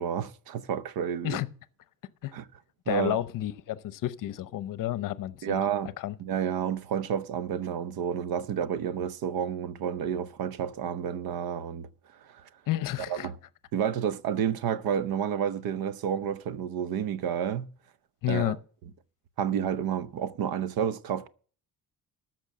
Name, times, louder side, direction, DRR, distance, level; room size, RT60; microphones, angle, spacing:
voice 1, 0.0-1.4 2.3-2.4 2.9-3.2 5.4-5.9 6.2-11.9 12.3-12.4 13.1-13.3 13.7-17.7 18.3-18.6 19.4-21.3, right 8 dB, 80° right, 0.8 m, -30 dB
voice 2, 2.9-5.7 6.0-6.1 12.7-13.3 18.2-18.6, left 14 dB, 65° left, 0.8 m, -31 dB
13.5 x 6.1 x 7.5 m
cardioid pair, 165°, 35 cm